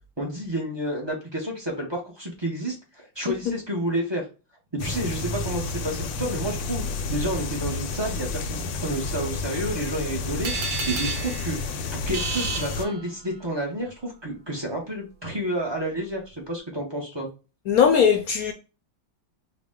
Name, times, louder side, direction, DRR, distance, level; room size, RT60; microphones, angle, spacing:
voice 1, 0.2-4.3 4.7-10.5 10.9-17.3, right 1 dB, 40° right, 0.3 m, -30 dB
sound 1, 4.8-12.9, left 3 dB, 85° left, 1.4 m, -31 dB
sound 2, 10.4-13.5, right 4 dB, 75° right, 1.8 m, -32 dB
voice 2, 17.7-18.5, left 7 dB, 70° left, 0.8 m, -19 dB
4.8 x 2.1 x 3.6 m
omnidirectional pair, 2.1 m